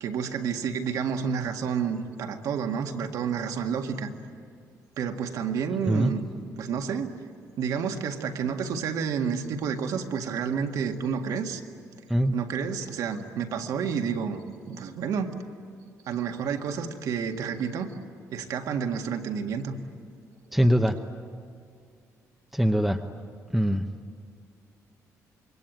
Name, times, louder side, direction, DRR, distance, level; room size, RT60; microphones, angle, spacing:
voice 1, 0.0-4.1 5.0-6.2 6.6-7.1 7.6-11.6 12.3-15.4 16.1-17.9 18.3-19.8, right 6 dB, 70° right, 5 dB, 1.9 m, -30 dB
voice 2, 20.5-20.9 22.5-23.0 23.5-23.8, equal, ahead, 3 dB, 0.8 m, -22 dB
27.0 x 24.0 x 9.1 m, 2.2 s
cardioid pair, 170°, 6 cm